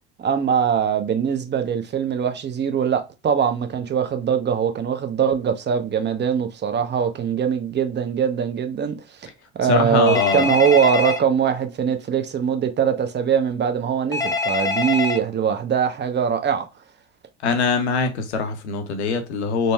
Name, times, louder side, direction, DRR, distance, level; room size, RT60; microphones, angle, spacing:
voice 1, 0.2-9.0 9.6-16.7, right 7 dB, 35° right, 0.7 m, -22 dB
voice 2, 9.6-10.5 17.4-19.7, left 5 dB, 90° left, 0.7 m, -22 dB
Telephone, 10.1-11.2 14.1-15.2, left 3 dB, 10° left, 0.7 m, -24 dB
4.0 x 2.1 x 2.3 m
hypercardioid pair, 65°, 32 cm